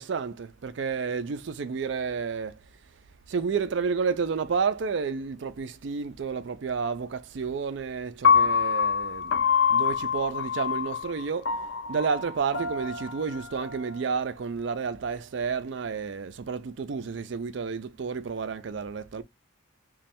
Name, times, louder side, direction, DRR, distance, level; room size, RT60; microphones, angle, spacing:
voice 1, 0.0-2.6 3.3-9.4 9.7-11.6 11.9-19.2, right 5 dB, 60° right, 0.4 m, -31 dB
Piano, 8.2-14.4, left 6 dB, 60° left, 0.5 m, -26 dB
3.2 x 2.3 x 4.2 m
head